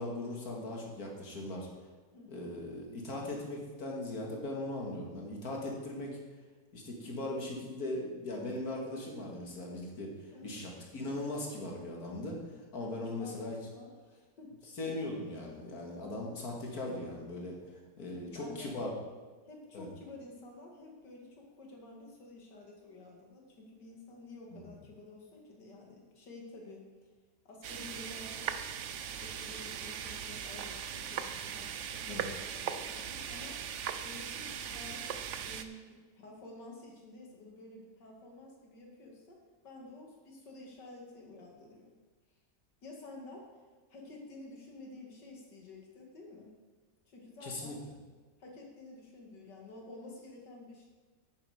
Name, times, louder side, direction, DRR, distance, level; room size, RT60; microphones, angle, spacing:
voice 1, 0.0-1.7 2.3-6.2 6.7-13.6 14.8-18.9 19.7-19.9 24.5-24.6 32.1-32.3 47.4-47.8, left 1 dB, 55° left, -1 dB, 2.5 m, -39 dB
voice 2, 2.1-2.5 10.3-10.7 12.9-14.5 18.0-18.9 19.5-26.9 27.4-28.5 29.2-33.6 34.0-39.4 39.6-41.9 42.8-43.5 43.9-46.5 47.1-47.8 48.4-50.9, left 2 dB, 75° left, 0 dB, 2.7 m, -50 dB
sound 1, 27.6-35.6, right 8 dB, 65° right, 0.7 m, -39 dB
10.5 x 9.4 x 4.9 m, 1.4 s
omnidirectional pair, 1.9 m